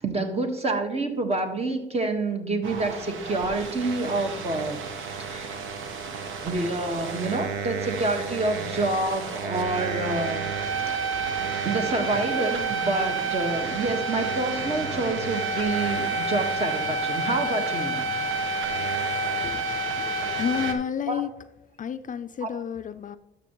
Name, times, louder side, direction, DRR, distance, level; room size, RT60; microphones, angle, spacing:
voice 1, 0.0-5.6 6.4-10.4 10.8-11.2 11.6-18.0 21.1-21.2 22.4-22.5, right 2 dB, 30° right, 5 dB, 1.3 m, -28 dB
sound 1, 2.6-20.7, right 3 dB, 80° right, 1.0 m, -29 dB
voice 2, 19.4-21.3 21.8-23.2, left 8 dB, 40° left, 11 dB, 0.4 m, -31 dB
12.0 x 6.7 x 3.0 m, 0.90 s
cardioid pair, 90°, 20 cm